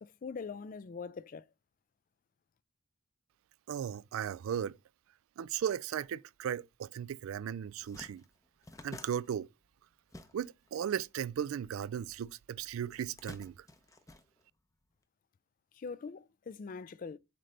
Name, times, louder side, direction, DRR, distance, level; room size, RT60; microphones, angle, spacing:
voice 1, 0.0-1.5 15.7-17.2, left 5 dB, 40° left, 0.3 m, -43 dB
voice 2, 3.7-4.8 5.4-8.2 8.8-9.5 10.3-13.7, right 9 dB, 80° right, 0.3 m, -36 dB
sound 1, 7.2-7.3 7.6-10.8 11.0-12.2 12.9-14.9, left 2 dB, 15° left, 0.7 m, -51 dB
7.7 x 3.3 x 3.8 m
head